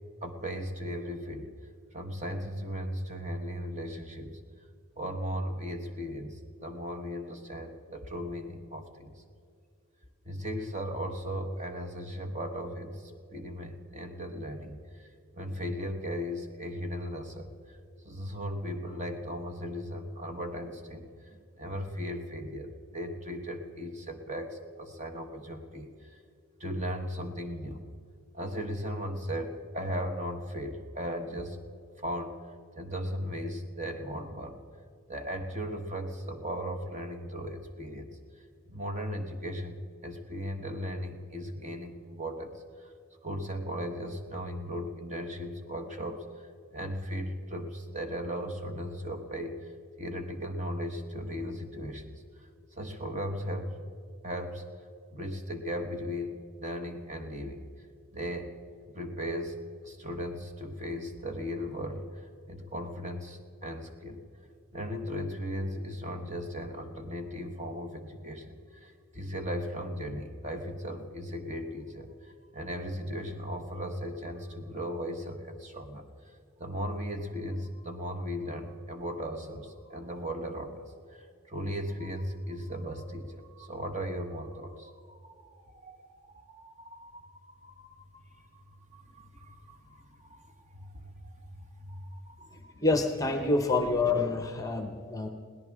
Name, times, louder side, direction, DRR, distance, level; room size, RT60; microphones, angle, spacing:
voice 1, 0.2-1.5 1.9-4.4 5.0-9.1 10.2-15.1 15.3-17.8 18.0-26.2 26.6-27.8 28.3-31.6 32.0-32.4 32.8-34.6 35.1-38.1 38.7-42.9 43.2-46.5 46.7-49.7 50.0-52.1 52.4-52.5 52.8-53.7 54.2-54.7 55.1-57.6 58.1-58.5 58.9-59.6 59.8-64.2 64.7-92.7, equal, 30° right, 5 dB, 1.2 m, -37 dB
voice 2, 92.5-95.3, left 3 dB, 15° left, 5 dB, 0.9 m, -27 dB
22.0 x 17.5 x 3.6 m, 2.3 s
head